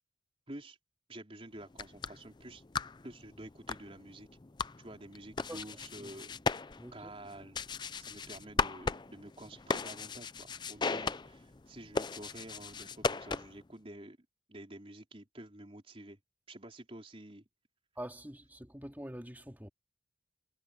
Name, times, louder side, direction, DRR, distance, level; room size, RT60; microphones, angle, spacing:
voice 1, 0.5-0.8 1.1-2.6 3.0-4.3 4.8-6.4 6.9-7.6 8.0-14.2 14.5-16.2 16.5-17.4, right 1 dB, 30° right, 3.8 m, -49 dB
sound 1, 1.6-13.7, left 4 dB, 25° left, 0.5 m, -38 dB
voice 2, 5.5-6.1 6.8-7.1 18.0-19.7, right 1 dB, 10° right, 2.5 m, -46 dB
head